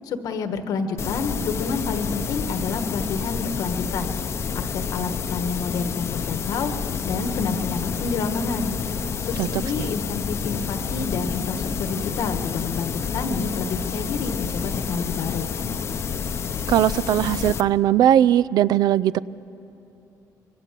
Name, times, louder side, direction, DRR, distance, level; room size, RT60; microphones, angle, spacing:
voice 1, 0.1-4.1 4.5-6.7 7.0-8.7 9.2-15.5, left 4 dB, 75° left, 8 dB, 1.5 m, -29 dB
sound 1, 1.0-17.6, left 6 dB, 45° left, 0.7 m, -29 dB
voice 2, 16.7-19.2, right 11 dB, 85° right, 18 dB, 0.5 m, -19 dB
25.5 x 23.0 x 7.6 m, 3.0 s
cardioid pair, 165°, 7 cm